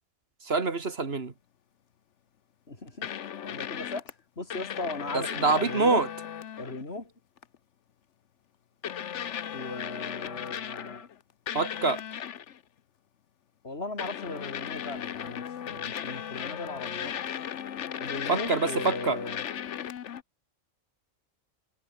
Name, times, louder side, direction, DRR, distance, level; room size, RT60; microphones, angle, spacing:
voice 1, 0.5-1.3 5.1-6.1 11.5-12.0 18.3-19.2, right 4 dB, 50° right, 2.3 m, -26 dB
voice 2, 2.7-3.1 3.4-4.0 4.4-6.0 6.6-7.1 9.5-11.1 13.6-17.1 18.0-19.4, left 2 dB, 50° left, 4.0 m, -37 dB
sound 1, 3.0-4.1 4.5-6.8 7.4-7.6 8.8-11.1 11.5-12.6 14.0-20.2, left 9 dB, 65° left, 1.2 m, -36 dB
omnidirectional pair, 1.4 m